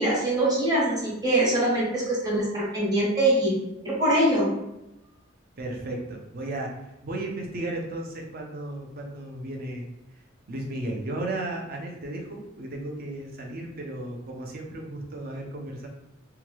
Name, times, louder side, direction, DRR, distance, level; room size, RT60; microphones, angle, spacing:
voice 1, 0.0-3.6 3.8-4.5, right 1 dB, 20° right, -5 dB, 1.0 m, -23 dB
voice 2, 5.6-9.9 10.1-10.2 10.5-15.9, right 1 dB, 50° right, 1 dB, 0.6 m, -34 dB
2.9 x 2.3 x 3.0 m, 0.91 s
head